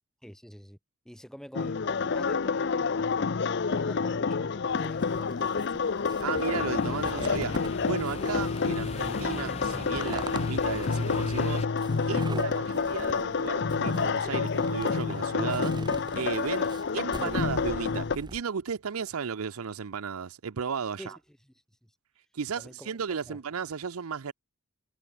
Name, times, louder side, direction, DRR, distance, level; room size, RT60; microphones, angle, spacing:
voice 1, 0.2-0.8 1.1-3.3 3.5-6.4 16.6-16.7 21.0-21.5 21.8-21.9 22.6-22.9 23.3-23.4, equal, ahead, 1.9 m, -47 dB
sound 1, 1.5-18.2, left 5 dB, 55° left, 0.5 m, -29 dB
sound 2, 4.8-18.4, right 1 dB, 20° right, 4.5 m, -43 dB
voice 2, 6.2-11.7 12.1-15.8 16.2-16.7 16.9-21.2 22.3-24.3, right 6 dB, 85° right, 0.6 m, -34 dB
sound 3, 6.4-11.7, left 2 dB, 30° left, 4.2 m, -40 dB
head